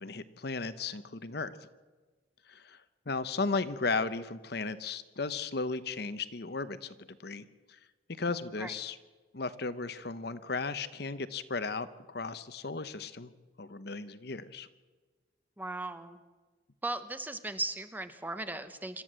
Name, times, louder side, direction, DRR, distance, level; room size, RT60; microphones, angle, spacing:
voice 1, 0.0-1.6 2.5-2.8 3.1-6.9 7.2-7.8 8.2-9.0 9.3-13.3 13.6-14.7, left 4 dB, 55° left, 13 dB, 0.9 m, -35 dB
voice 2, 15.6-16.2 16.8-19.0, right 2 dB, 10° right, 10 dB, 1.0 m, -37 dB
26.0 x 13.0 x 7.6 m, 1.3 s
head